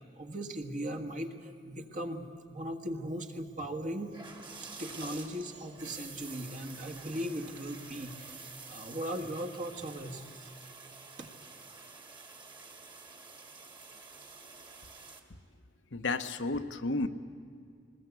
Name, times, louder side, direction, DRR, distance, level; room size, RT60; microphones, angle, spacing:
voice 1, 0.2-4.2 4.8-10.5 11.2-11.3, equal, 45° right, 5 dB, 1.7 m, -38 dB
sound 1, 4.1-15.2, right 4 dB, 25° right, 1.9 m, -49 dB
voice 2, 15.9-17.1, left 3 dB, 70° left, 8 dB, 1.0 m, -32 dB
20.5 x 20.0 x 8.3 m, 2.2 s
head